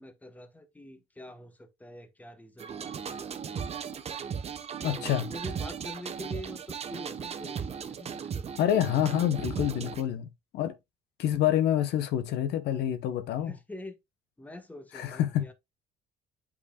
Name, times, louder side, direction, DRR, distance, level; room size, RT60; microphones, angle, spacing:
voice 1, 0.0-3.7 4.8-8.3 13.5-14.0 14.4-15.5, left 1 dB, 10° left, 1.2 m, -45 dB
sound 1, 2.6-10.0, right 7 dB, 40° right, 0.9 m, -37 dB
voice 2, 4.8-5.3 8.6-10.8 11.2-13.5 14.9-15.4, left 11 dB, 75° left, 1.0 m, -27 dB
8.3 x 5.4 x 2.3 m
cardioid pair, 110°, 17 cm